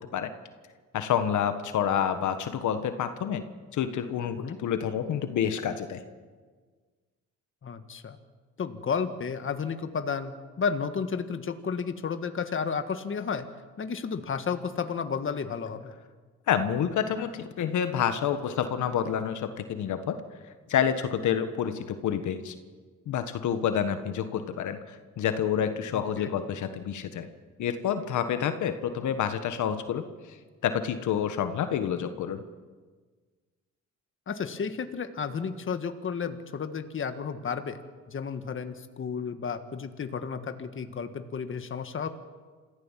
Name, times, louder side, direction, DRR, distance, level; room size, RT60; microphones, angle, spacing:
voice 1, 0.9-3.4 3.7-6.0 16.5-20.2 20.7-22.5 23.1-27.3 27.6-30.0 30.6-32.4, left 8 dB, 75° left, 9 dB, 1.5 m, -28 dB
voice 2, 7.6-8.2 8.6-13.5 13.8-15.9 25.9-26.3 34.3-37.8 38.1-42.1, left 6 dB, 45° left, 9 dB, 1.6 m, -32 dB
27.0 x 15.5 x 7.4 m, 1.5 s
cardioid pair, 90°, 30 cm